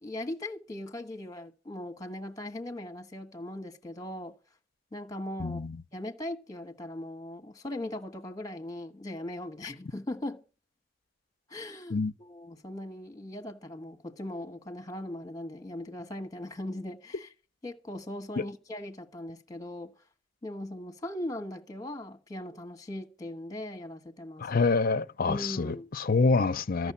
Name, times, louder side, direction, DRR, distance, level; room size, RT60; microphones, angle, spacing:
voice 1, 0.0-4.4 4.9-5.6 5.9-10.4 11.5-17.3 17.6-19.9 20.4-24.5 25.3-25.9 26.8-26.9, left 1 dB, 20° left, 1.5 m, -39 dB
voice 2, 5.4-5.8 11.9-12.1 18.4-18.5 24.4-26.9, left 4 dB, 50° left, 0.6 m, -26 dB
13.5 x 6.3 x 8.5 m
head